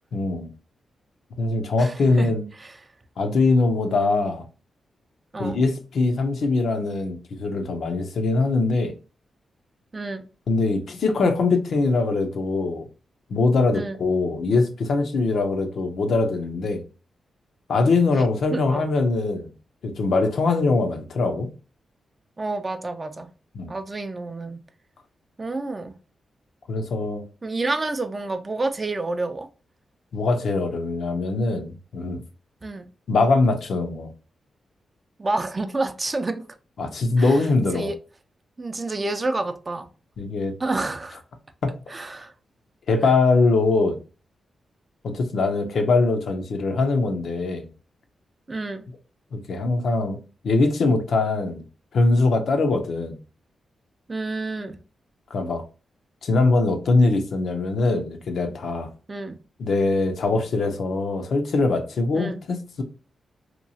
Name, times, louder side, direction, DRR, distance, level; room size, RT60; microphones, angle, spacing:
voice 1, 0.1-0.5 1.4-2.4 3.2-4.4 5.4-8.9 10.5-12.9 13.3-16.8 17.7-19.5 19.8-21.5 23.6-23.7 26.7-27.2 30.1-32.2 33.1-34.1 36.8-37.9 40.2-40.5 41.6-41.8 42.9-44.0 45.0-47.7 49.3-50.2 50.4-51.6 51.9-53.2 55.3-55.6 56.2-58.9 59.6-62.8, left 3 dB, 75° left, 0.5 m, -22 dB
voice 2, 1.8-2.8 5.3-5.6 9.9-10.2 13.7-14.0 18.1-18.2 18.5-18.9 22.4-23.3 23.7-24.6 25.4-26.0 27.4-29.5 32.6-32.9 35.2-36.4 37.2-37.5 37.7-38.0 38.6-39.9 40.6-41.2 41.9-42.3 48.5-48.8 54.1-54.8 59.1-59.4 62.1-62.4, right 2 dB, 35° right, 0.4 m, -29 dB
2.9 x 2.3 x 2.7 m
cardioid pair, 65°, 0 cm